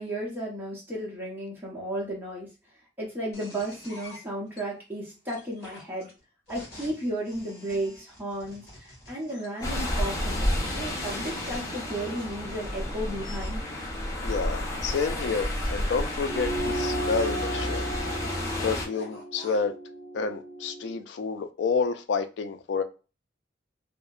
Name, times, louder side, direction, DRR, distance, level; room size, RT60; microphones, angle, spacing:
voice 1, 0.0-2.5 3.0-6.1 6.5-10.5 10.7-13.6, right 1 dB, 10° right, 0.7 m, -34 dB
sound 1, 3.3-4.6 5.3-10.1 10.9-12.3 13.2-13.6 14.8-16.6 17.4-19.6, left 1 dB, 55° left, 1.3 m, -48 dB
sound 2, 9.6-18.9, left 1 dB, 20° left, 0.5 m, -31 dB
voice 2, 14.2-17.8 18.6-19.7 20.1-22.8, left 5 dB, 70° left, 0.3 m, -29 dB
sound 3, 16.2-21.0, right 1 dB, 85° right, 0.6 m, -35 dB
2.7 x 2.1 x 2.3 m
head